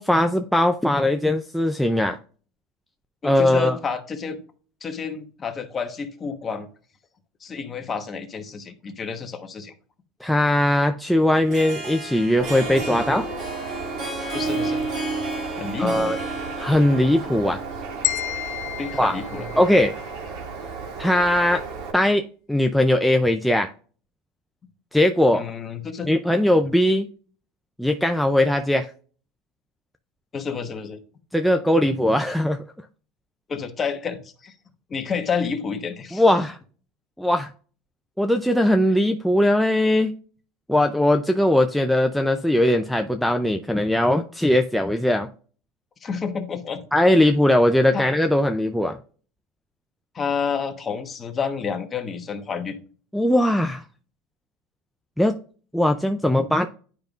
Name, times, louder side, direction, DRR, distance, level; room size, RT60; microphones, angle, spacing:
voice 1, 0.0-2.2 3.2-3.8 10.2-13.3 15.8-16.2 16.6-17.6 19.0-19.2 19.6-19.9 21.0-21.6 21.9-23.7 24.9-25.4 26.1-27.1 27.8-28.9 31.3-32.6 36.1-36.6 37.2-37.5 38.2-40.1 40.7-45.3 46.9-49.0 53.1-53.8 55.2-55.4 55.7-56.7, left 1 dB, ahead, 5 dB, 0.4 m, -20 dB
voice 2, 3.2-4.4 4.8-6.7 7.4-9.7 14.3-14.8 15.6-16.2 18.8-19.5 25.3-26.1 30.3-31.0 33.5-34.5 34.9-36.2 46.0-46.8 47.9-48.1 50.1-52.8, left 6 dB, 25° left, 6 dB, 1.1 m, -29 dB
Harp, 11.3-18.7, right 2 dB, 45° right, 1.8 m, -32 dB
Bird, 12.4-21.9, right 5 dB, 60° right, 1.9 m, -35 dB
sound 1, 18.0-20.2, left 16 dB, 60° left, 0.6 m, -30 dB
10.5 x 5.1 x 2.4 m, 0.41 s
supercardioid pair, 130°, 0 cm